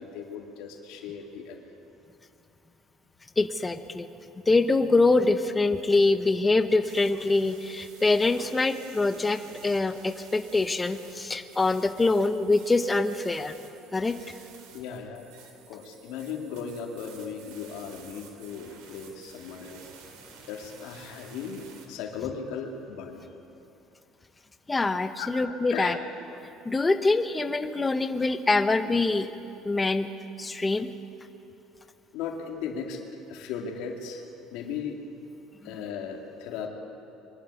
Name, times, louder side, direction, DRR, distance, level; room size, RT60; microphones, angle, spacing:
voice 1, 0.0-1.7 14.7-19.8 20.5-23.2 25.2-25.3 25.7-26.0 32.1-33.0 33.3-35.0 35.6-36.7, left 6 dB, 75° left, 2 dB, 2.4 m, -37 dB
voice 2, 3.4-4.1 4.5-13.5 13.9-14.2 24.7-26.0 26.4-29.3 29.6-30.1 30.4-30.9, left 3 dB, 15° left, 9 dB, 0.7 m, -24 dB
sound 1, 6.8-21.9, right 6 dB, 85° right, 3.1 m, -51 dB
22.5 x 11.5 x 9.8 m, 2.8 s
cardioid pair, 150°, 0 cm